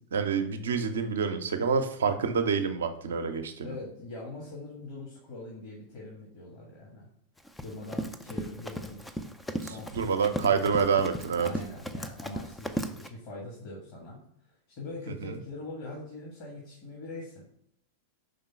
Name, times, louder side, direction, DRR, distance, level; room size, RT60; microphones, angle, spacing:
voice 1, 0.1-3.7 9.6-11.5 15.2-15.3, right 6 dB, 65° right, 7 dB, 0.7 m, -27 dB
voice 2, 3.6-7.1 7.6-9.1 9.7-10.3 11.4-14.2 14.7-17.5, left 2 dB, 45° left, -3 dB, 1.7 m, -42 dB
Run, 7.4-13.1, equal, 5° left, 0.5 m, -37 dB
5.2 x 3.7 x 5.8 m, 0.68 s
figure-of-eight pair, 90°, 0 cm